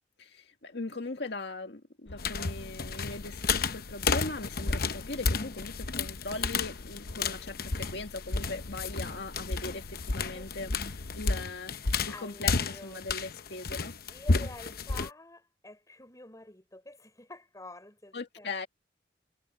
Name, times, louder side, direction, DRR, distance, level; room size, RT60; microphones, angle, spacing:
voice 1, 0.2-10.7 11.1-13.9 18.1-18.7, left 3 dB, 75° left, 1.8 m, -40 dB
sound 1, 2.1-11.4, left 2 dB, 90° left, 0.9 m, -46 dB
sound 2, 2.2-15.1, left 4 dB, 55° left, 0.9 m, -31 dB
voice 2, 10.9-11.3 12.1-13.0 14.1-18.5, left 2 dB, 20° left, 5.8 m, -49 dB
head